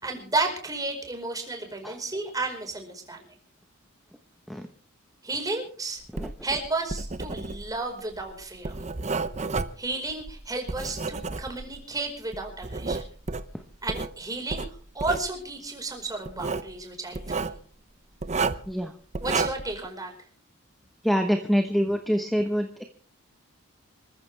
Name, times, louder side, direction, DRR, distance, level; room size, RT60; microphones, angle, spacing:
voice 1, 0.0-3.2 5.2-6.0 6.4-8.7 9.8-13.1 13.8-14.6 14.9-17.5 19.2-20.1, right 3 dB, 15° right, 3 dB, 4.9 m, -32 dB
Writing, 6.1-11.9 12.3-14.1 14.5-15.3 16.3-16.7 17.1-17.6 18.2-18.7 19.1-19.7, right 3 dB, 35° right, 0.8 m, -31 dB
voice 2, 21.0-22.8, equal, ahead, 5 dB, 1.1 m, -25 dB
27.0 x 15.0 x 3.5 m, 0.43 s
head